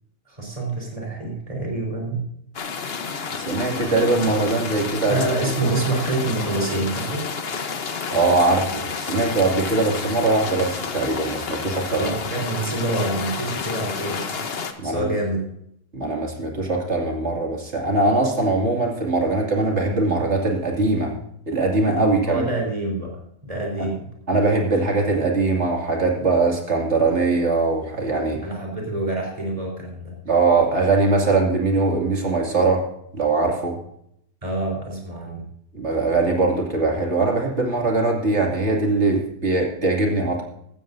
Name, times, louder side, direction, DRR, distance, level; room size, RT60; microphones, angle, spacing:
voice 1, 0.3-2.3 5.1-7.2 12.0-14.4 14.8-15.4 22.3-23.1 23.4-24.1 28.4-30.2 34.4-35.4, right 2 dB, 20° right, -1 dB, 3.9 m, -26 dB
sound 1, 2.5-14.7, left 5 dB, 45° left, 1.1 m, -30 dB
voice 2, 3.3-5.2 5.6-5.7 8.1-12.1 14.8-15.1 15.9-21.1 21.5-22.4 23.8-23.9 24.3-28.4 30.2-32.8 33.1-33.8 35.7-40.4, right 3 dB, 45° right, 1 dB, 2.7 m, -21 dB
16.5 x 13.0 x 2.6 m, 0.73 s
omnidirectional pair, 1.6 m